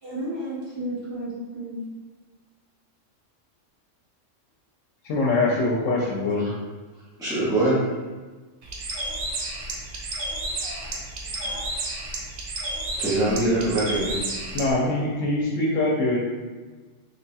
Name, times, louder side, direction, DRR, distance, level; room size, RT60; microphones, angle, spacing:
voice 1, 0.0-1.8 10.4-10.9 11.2-11.8, right 1 dB, 50° right, -12 dB, 1.6 m, -34 dB
voice 2, 5.0-6.5 14.5-16.2, left 2 dB, 75° left, -4 dB, 1.0 m, -23 dB
voice 3, 7.2-7.8 10.9-11.0 13.0-14.2, right 1 dB, 5° right, -10 dB, 0.7 m, -23 dB
Bird, 8.6-14.7, right 2 dB, 75° right, 1.0 m, -31 dB
4.0 x 3.2 x 2.3 m, 1.3 s
omnidirectional pair, 1.3 m